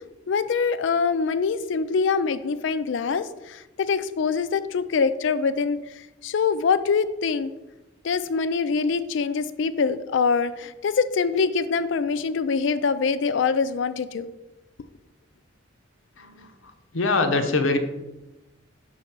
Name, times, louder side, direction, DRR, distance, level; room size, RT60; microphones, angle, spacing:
voice 1, 0.3-5.8 6.2-7.5 8.0-14.3, left 5 dB, 65° left, 14 dB, 0.4 m, -24 dB
voice 2, 16.9-17.8, left 3 dB, 90° left, 7 dB, 0.7 m, -23 dB
6.1 x 3.2 x 5.8 m, 1.0 s
head